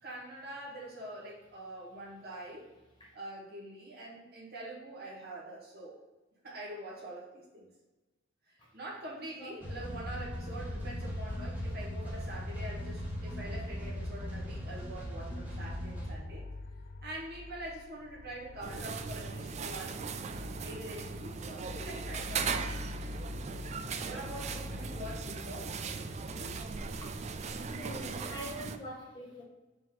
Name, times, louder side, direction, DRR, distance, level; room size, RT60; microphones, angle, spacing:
voice 1, 0.0-2.7 3.1-6.0 6.4-7.7 8.4-16.5 17.0-20.2 20.6-22.8 24.0-25.8, right 1 dB, 55° right, -4 dB, 1.9 m, -45 dB
sound 1, 9.6-16.1, equal, 10° right, 1.4 m, -39 dB
sound 2, 9.7-26.6, left 2 dB, 50° left, 0.3 m, -47 dB
sound 3, 18.6-28.8, right 5 dB, 35° right, 0.4 m, -38 dB
voice 2, 27.7-29.4, equal, 20° left, -4 dB, 1.7 m, -43 dB
5.1 x 3.6 x 5.3 m, 1.1 s
head